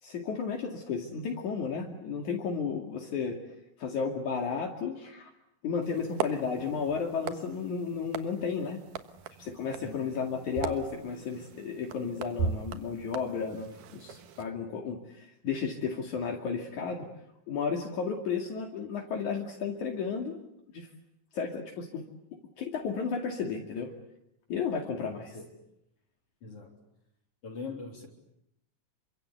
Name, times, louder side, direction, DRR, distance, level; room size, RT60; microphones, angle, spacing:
voice 1, 0.0-3.4 3.8-5.3 5.6-8.8 9.4-17.1 17.5-20.4 20.7-20.9 21.3-22.0 22.6-23.9 24.5-25.4, left 5 dB, 65° left, 1 dB, 3.8 m, -33 dB
sound 1, 5.8-14.4, right 6 dB, 80° right, 3.0 m, -39 dB
voice 2, 25.1-25.5 26.4-26.7 27.4-28.1, left 4 dB, 45° left, 2 dB, 4.3 m, -42 dB
29.0 x 25.0 x 8.3 m, 0.81 s
omnidirectional pair, 3.7 m